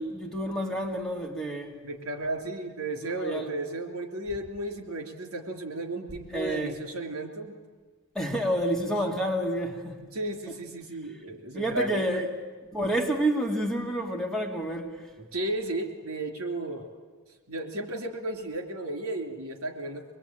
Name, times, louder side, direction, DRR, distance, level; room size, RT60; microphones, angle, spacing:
voice 1, 0.0-1.8 3.0-3.5 6.3-6.8 8.1-10.0 11.5-12.3 12.7-15.1, right 1 dB, 5° left, 2.2 m, -29 dB
voice 2, 1.8-7.6 10.0-12.2 15.2-16.9 17.5-20.0, right 1 dB, 70° right, 3.3 m, -34 dB
24.5 x 21.0 x 8.9 m
head